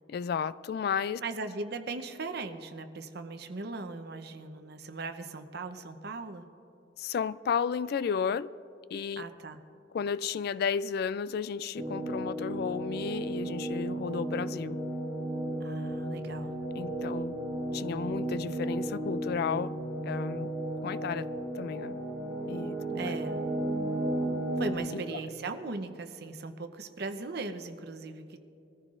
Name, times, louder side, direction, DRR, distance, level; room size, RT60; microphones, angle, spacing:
voice 1, 0.1-1.2 7.0-8.5 8.9-9.3 9.9-14.8 16.8-17.4 17.7-19.7 20.0-20.5 20.8-21.3 21.5-22.0 22.5-23.1 24.9-25.0, left 6 dB, 60° left, 0.3 m, -33 dB
voice 2, 1.2-6.5 9.2-9.6 15.6-16.5 22.9-23.4 24.6-28.4, right 3 dB, 65° right, 0.8 m, -38 dB
sound 1, 11.7-24.7, right 1 dB, 5° right, 3.4 m, -34 dB
22.0 x 14.5 x 2.5 m
head